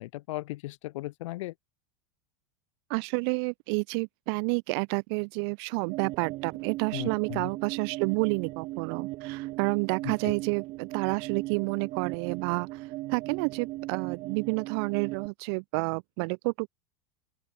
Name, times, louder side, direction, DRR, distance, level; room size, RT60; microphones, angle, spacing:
voice 1, 0.0-1.5 6.9-7.5 10.0-10.3, left 18 dB, 80° left, 0.6 m, -37 dB
voice 2, 2.9-16.7, right 33 dB, 55° right, 1.0 m, -30 dB
sound 1, 5.8-15.3, right 19 dB, 35° right, 0.5 m, -37 dB
open air
supercardioid pair, 160°, 16 cm